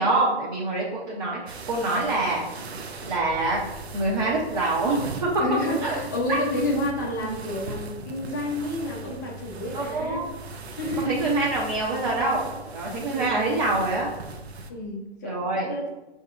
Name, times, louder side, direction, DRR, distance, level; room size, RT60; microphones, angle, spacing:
voice 1, 0.0-2.5 3.0-3.6 3.9-5.3 5.8-6.0 6.3-6.4 9.7-10.3 11.0-14.1 15.2-15.7, right 2 dB, 40° right, -5 dB, 0.9 m, -25 dB
sound 1, 1.5-14.7, right 3 dB, 70° right, 0.6 m, -39 dB
voice 2, 5.4-10.3 10.8-11.1 12.9-13.3 14.7-15.9, left 1 dB, 15° left, -1 dB, 0.5 m, -30 dB
5.5 x 2.8 x 2.4 m, 1.0 s
figure-of-eight pair, 125°, 34 cm